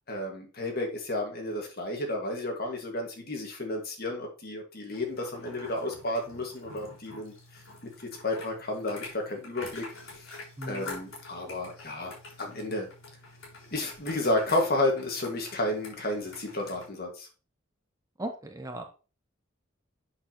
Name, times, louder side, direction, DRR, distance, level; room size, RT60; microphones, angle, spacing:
voice 1, 0.1-9.9 10.7-12.1 12.4-12.9 13.7-17.3, left 1 dB, 45° left, 2 dB, 1.9 m, -32 dB
sound 1, 4.9-16.9, left 2 dB, 70° left, 4.2 m, -46 dB
voice 2, 10.6-10.9 18.2-18.9, right 1 dB, 15° right, 5 dB, 0.7 m, -37 dB
7.9 x 6.2 x 2.9 m, 0.34 s
head